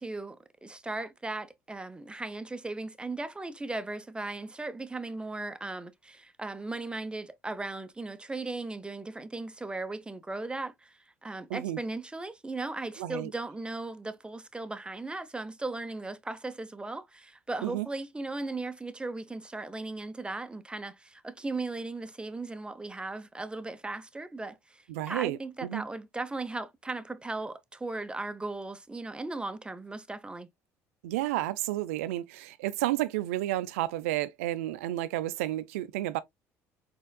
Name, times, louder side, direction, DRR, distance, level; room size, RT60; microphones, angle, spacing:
voice 1, 0.0-30.5, right 2 dB, 15° right, 0.7 m, -37 dB
voice 2, 13.0-13.3 17.6-17.9 24.9-25.8 31.0-36.2, right 15 dB, 85° right, 0.4 m, -31 dB
4.2 x 3.7 x 2.2 m
hypercardioid pair, 65°, 7 cm